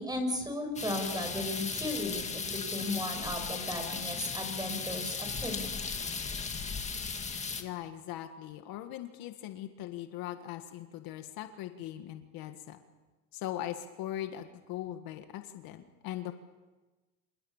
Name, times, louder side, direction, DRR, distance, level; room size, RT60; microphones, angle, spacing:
voice 1, 0.0-5.7, left 1 dB, 10° right, 6 dB, 6.2 m, -35 dB
sound 1, 0.8-7.6, left 5 dB, 15° left, 2.0 m, -36 dB
voice 2, 7.6-12.8 13.3-16.3, left 12 dB, 55° left, 7 dB, 1.8 m, -40 dB
28.0 x 27.5 x 7.2 m, 1.2 s
cardioid pair, 145°, 44 cm